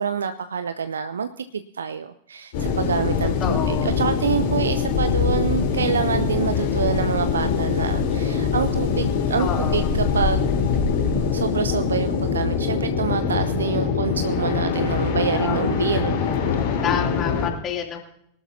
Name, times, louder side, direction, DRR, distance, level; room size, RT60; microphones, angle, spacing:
voice 1, 0.0-10.5 11.3-16.2, right 6 dB, 70° right, 11 dB, 0.6 m, -26 dB
sound 1, 2.5-17.5, left 6 dB, 50° left, 3.7 m, -23 dB
voice 2, 3.4-3.9 9.4-9.9 15.3-16.0 16.8-18.0, left 8 dB, 30° left, 2 dB, 3.0 m, -29 dB
23.0 x 12.5 x 2.8 m, 0.72 s
figure-of-eight pair, 90°, 0 cm